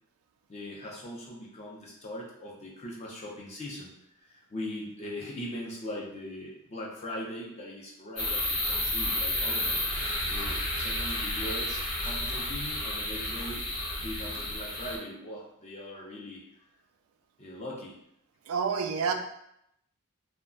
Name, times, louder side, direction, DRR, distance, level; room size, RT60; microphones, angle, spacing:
voice 1, 0.5-9.8 10.3-13.6 14.0-16.6 17.4-17.9, left 1 dB, 30° left, -3 dB, 0.5 m, -40 dB
sound 1, 8.2-15.0, left 1 dB, 60° left, 0.8 m, -31 dB
voice 2, 18.5-19.1, right 6 dB, 75° right, 6 dB, 0.3 m, -28 dB
2.2 x 2.1 x 3.7 m, 0.77 s
head